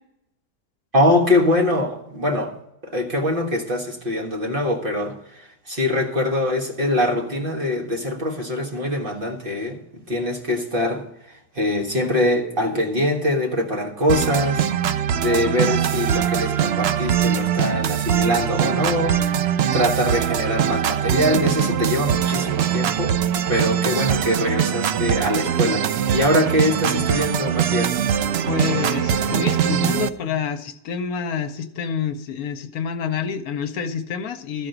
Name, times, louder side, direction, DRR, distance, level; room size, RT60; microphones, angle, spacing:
voice 1, 0.9-2.5 2.8-11.0 11.5-14.7 15.1-19.2 19.7-23.2 23.5-28.0, left 1 dB, 35° right, 1 dB, 1.6 m, -23 dB
sound 1, 14.1-30.1, right 9 dB, 90° right, 0.5 m, -22 dB
voice 2, 28.5-34.7, left 6 dB, 70° left, 9 dB, 1.1 m, -27 dB
13.0 x 4.9 x 7.9 m, 0.79 s
omnidirectional pair, 1.7 m